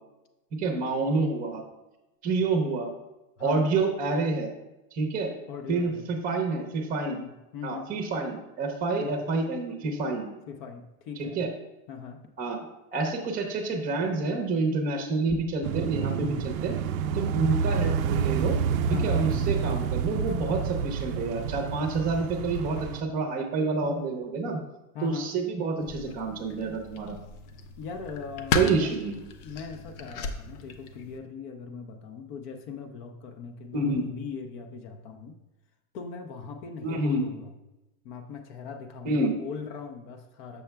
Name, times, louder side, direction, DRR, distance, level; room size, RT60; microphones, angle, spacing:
voice 1, 0.5-1.6 2.2-2.9 3.4-4.5 4.9-5.3 5.7-7.2 7.6-10.3 11.2-11.5 12.4-12.6 12.9-16.7 17.1-18.6 18.9-24.6 25.0-27.2 28.5-29.2 33.7-34.1 36.8-37.2 39.0-39.3, right 3 dB, 20° right, 3 dB, 0.7 m, -28 dB
voice 2, 3.4-3.7 5.5-6.1 7.0-7.9 9.0-9.1 10.5-11.4 11.9-12.2 18.8-19.2 24.9-25.3 27.8-28.9 29.4-35.3 35.9-37.5 38.0-40.6, left 6 dB, 35° left, 6 dB, 0.5 m, -40 dB
sound 1, 15.6-23.0, right 7 dB, 70° right, 0.5 m, -28 dB
sound 2, 25.8-31.2, left 4 dB, 80° left, 0.8 m, -35 dB
6.9 x 6.6 x 2.2 m, 0.98 s
supercardioid pair, 145°, 44 cm